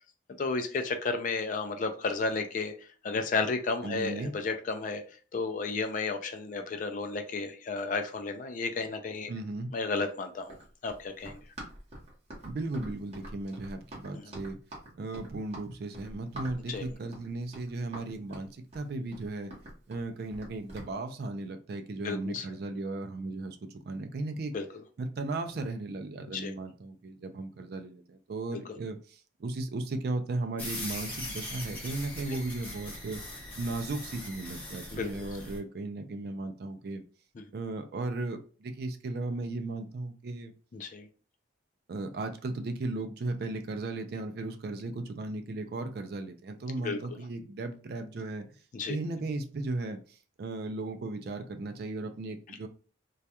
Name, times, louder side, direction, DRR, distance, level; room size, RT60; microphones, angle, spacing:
voice 1, 0.4-2.7 3.0-5.0 5.3-9.3 9.7-10.6 10.8-11.4 14.1-14.3 16.7-16.8 22.0-22.5 24.5-24.6 26.3-26.5 30.8-30.9 34.9-35.1 37.4-37.5 40.7-41.1 46.8-47.0 48.7-49.0, left 4 dB, 40° left, 6 dB, 0.3 m, -32 dB
voice 2, 3.8-4.3 9.3-9.7 12.4-14.6 15.0-19.5 19.9-23.6 23.8-24.5 25.0-33.2 33.5-37.0 37.5-40.5 41.9-48.5 48.9-52.7, right 2 dB, 50° right, 7 dB, 0.3 m, -36 dB
Run, 10.4-20.9, right 1 dB, 35° right, 0.8 m, -46 dB
sound 1, 30.6-35.6, left 1 dB, 10° left, 0.7 m, -40 dB
2.3 x 2.1 x 2.8 m, 0.39 s
head